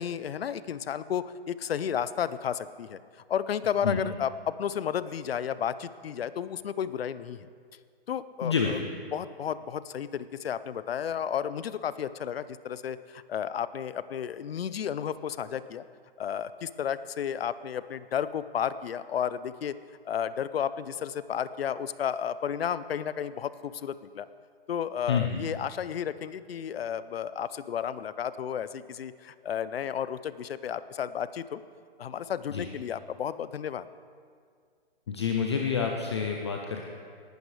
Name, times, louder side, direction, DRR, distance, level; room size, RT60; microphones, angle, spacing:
voice 1, 0.0-3.0 3.3-7.5 8.1-8.8 9.1-15.8 16.2-19.8 20.0-24.3 24.7-31.6 32.0-33.9, left 8 dB, 70° left, 15 dB, 0.6 m, -32 dB
voice 2, 8.4-8.7 25.1-25.4 32.5-32.7 35.1-36.9, left 6 dB, 25° left, 2 dB, 0.5 m, -28 dB
18.5 x 12.0 x 3.3 m, 2.1 s
hypercardioid pair, 165°, 31 cm